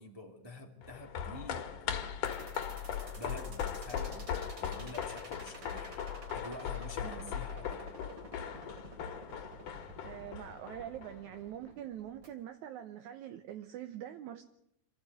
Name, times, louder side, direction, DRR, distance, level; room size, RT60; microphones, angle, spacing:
voice 1, 0.0-2.4 2.9-7.9, left 1 dB, 10° right, 2.1 m, -49 dB
sound 1, 0.8-11.4 11.7-11.8, left 8 dB, 75° left, 3.2 m, -39 dB
sound 2, 2.2-12.3, right 3 dB, 35° right, 3.6 m, -51 dB
voice 2, 7.0-7.3 10.1-14.4, right 11 dB, 70° right, 2.3 m, -44 dB
27.0 x 15.0 x 9.3 m
omnidirectional pair, 3.7 m